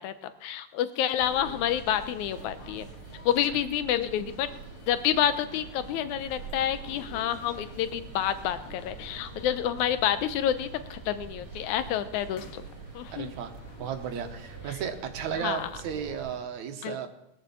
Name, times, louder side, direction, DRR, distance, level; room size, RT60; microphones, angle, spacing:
voice 1, 0.0-2.9 3.2-4.5 4.9-12.6 12.9-13.3 15.4-15.7 16.8-17.1, left 10 dB, 80° left, 12 dB, 2.1 m, -28 dB
sound 1, 1.2-16.4, left 5 dB, 50° left, 2.1 m, -52 dB
sound 2, 1.2-16.3, right 5 dB, 50° right, 4.2 m, -46 dB
sound 3, 6.7-14.8, right 4 dB, 25° right, 5.8 m, -53 dB
voice 2, 13.1-13.5 13.8-17.1, right 8 dB, 75° right, 6 dB, 2.5 m, -34 dB
20.0 x 6.9 x 7.0 m, 0.85 s
omnidirectional pair, 3.4 m